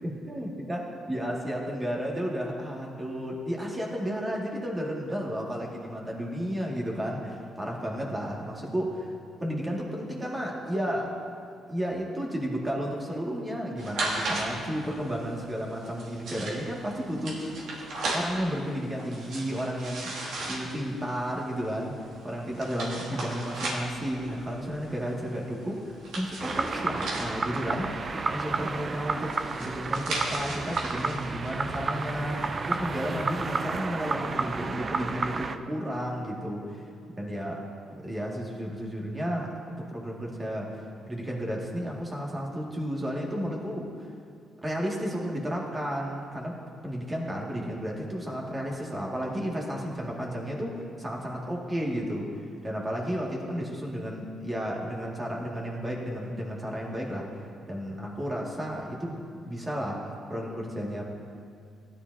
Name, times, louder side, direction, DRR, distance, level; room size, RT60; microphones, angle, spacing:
voice 1, 0.3-9.1 9.4-11.1 11.7-17.6 18.1-20.1 20.5-21.9 22.2-27.9 28.3-36.8 37.2-37.6 37.9-40.7 41.1-44.1 44.6-52.3 52.6-60.0 60.3-61.0, equal, 20° right, -2 dB, 2.0 m, -32 dB
sound 1, 13.8-32.7, right 2 dB, 75° right, 2.4 m, -37 dB
sound 2, 26.4-35.6, right 4 dB, 35° right, 0.5 m, -31 dB
16.0 x 10.5 x 2.7 m, 2.4 s
cardioid pair, 90°, 0 cm